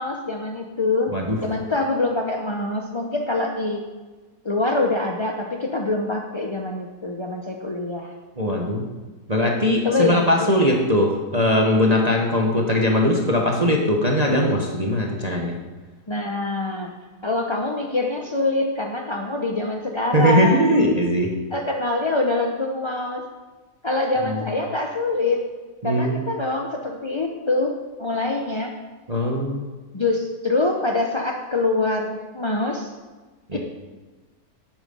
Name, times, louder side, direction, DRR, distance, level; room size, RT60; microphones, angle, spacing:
voice 1, 0.0-1.2 1.4-3.8 4.4-8.1 9.8-10.7 16.1-16.9 17.2-20.6 21.5-23.2 23.8-25.4 25.8-27.7 28.0-28.7 29.9-32.9 33.5-33.6, left 2 dB, 35° left, 1 dB, 0.4 m, -24 dB
voice 2, 8.4-8.9 9.3-15.5 20.1-21.3 24.2-24.4 25.8-26.2 29.1-29.7 33.5-33.6, left 1 dB, 25° right, 0 dB, 1.2 m, -20 dB
11.0 x 9.0 x 5.5 m, 1.3 s
omnidirectional pair, 1.8 m